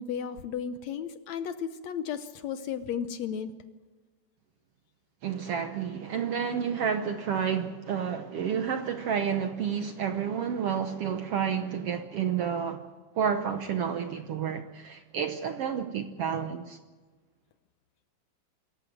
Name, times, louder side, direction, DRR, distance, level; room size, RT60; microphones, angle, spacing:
voice 1, 0.0-3.5, left 7 dB, 70° left, 1.9 m, -34 dB
voice 2, 5.2-12.8 13.1-16.8, right 7 dB, 70° right, 1.5 m, -30 dB
26.0 x 14.0 x 9.2 m
omnidirectional pair, 3.7 m